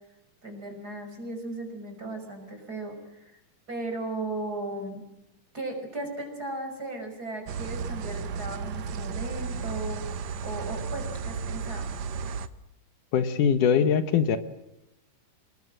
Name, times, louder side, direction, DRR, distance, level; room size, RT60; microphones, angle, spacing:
voice 1, 0.4-3.4 3.7-5.0 5.5-10.0 10.4-11.9, right 2 dB, 25° right, 4 dB, 6.2 m, -36 dB
sound 1, 7.5-12.5, right 5 dB, 65° right, 2.0 m, -33 dB
voice 2, 13.1-14.4, left 7 dB, 75° left, 10 dB, 2.7 m, -22 dB
27.0 x 20.5 x 7.7 m, 0.89 s
omnidirectional pair, 3.7 m